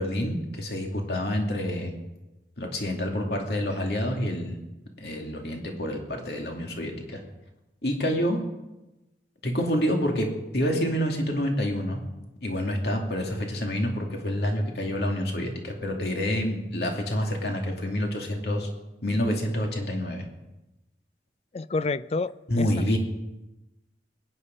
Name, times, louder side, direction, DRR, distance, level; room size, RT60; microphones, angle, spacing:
voice 1, 0.0-1.9 2.6-4.6 5.0-7.2 7.8-8.4 9.4-10.3 10.5-12.0 12.4-18.7 19.0-20.3 22.5-23.0, equal, 65° left, 2 dB, 2.7 m, -28 dB
voice 2, 21.5-22.7, left 3 dB, 35° left, 17 dB, 0.4 m, -29 dB
22.0 x 9.9 x 5.4 m, 1.0 s
head